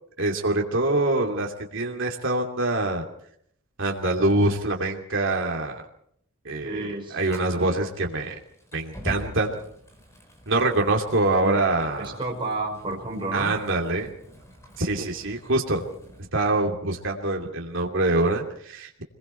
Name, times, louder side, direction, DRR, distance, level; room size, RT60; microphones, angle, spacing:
voice 1, 0.2-3.1 3.8-5.8 6.4-8.4 8.7-9.6 10.5-12.2 13.3-14.1 14.8-15.8 16.3-19.0, right 2 dB, 60° right, 1 dB, 2.8 m, -25 dB
voice 2, 6.6-7.8 11.4-11.6 12.0-13.5, right 2 dB, 25° right, -2 dB, 5.3 m, -32 dB
Fire, 7.3-16.3, equal, 15° left, 4.7 m, -44 dB
27.0 x 21.5 x 4.6 m, 0.68 s
head